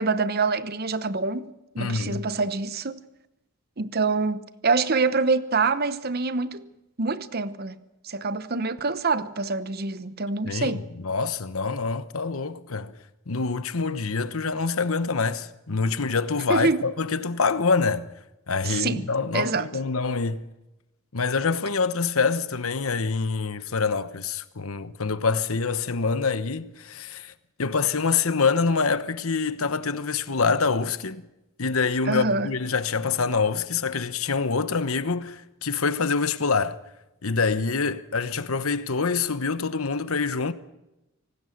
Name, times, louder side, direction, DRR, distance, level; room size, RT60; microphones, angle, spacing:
voice 1, 0.0-3.0 3.8-6.7 7.0-10.9 16.5-16.8 18.6-19.7 32.1-32.5, right 4 dB, 45° right, 0.9 m, -26 dB
voice 2, 1.8-2.3 10.4-12.9 13.3-18.1 18.5-20.4 21.1-27.3 27.6-31.3 31.6-36.8 37.2-40.5, left 4 dB, 75° left, 1.1 m, -26 dB
25.5 x 18.5 x 6.6 m
head